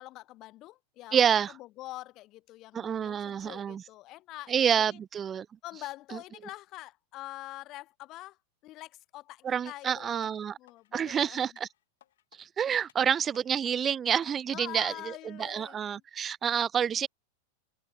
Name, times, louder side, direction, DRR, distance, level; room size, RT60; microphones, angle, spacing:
voice 1, 0.0-5.0 5.6-8.4 8.6-10.3 10.6-11.6 14.5-16.0, left 17 dB, 35° left, 0.9 m, -45 dB
voice 2, 1.1-1.5 2.7-3.8 4.5-5.5 9.4-10.6 10.9-11.7 12.4-17.1, right 8 dB, 25° right, 0.6 m, -28 dB
sound 1, 10.2-11.1 11.6-12.4 12.9-13.7 14.2-15.1 15.6-15.7, left 13 dB, 60° left, 3.9 m, -63 dB
figure-of-eight pair, 90°, 0 cm